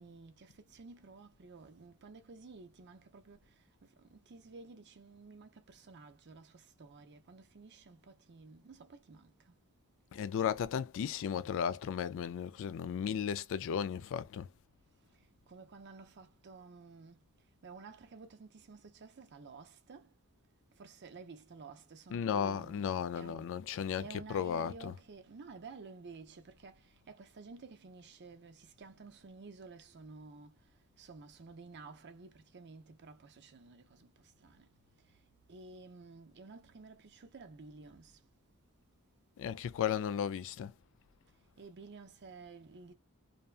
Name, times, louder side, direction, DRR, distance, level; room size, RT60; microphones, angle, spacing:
voice 1, 0.0-9.5 15.5-17.2 17.6-20.1 20.8-22.9 23.1-23.6 24.0-30.6 31.0-34.7 35.5-38.2 41.6-42.9, right 4 dB, 50° right, 0.6 m, -52 dB
voice 2, 10.1-14.5 22.1-24.9 39.4-40.7, left 8 dB, 60° left, 0.3 m, -35 dB
2.7 x 2.2 x 2.4 m
head